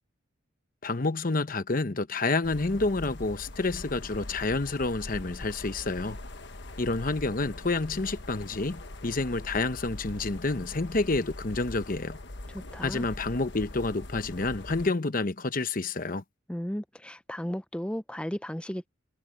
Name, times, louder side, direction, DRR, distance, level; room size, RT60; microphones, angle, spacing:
voice 1, 0.8-6.2 6.8-12.2 12.8-16.2, left 3 dB, 45° left, 0.9 m, -29 dB
sound 1, 2.4-14.9, left 1 dB, 60° left, 1.3 m, -42 dB
voice 2, 12.5-13.1 16.5-18.9, equal, 5° left, 0.5 m, -35 dB
head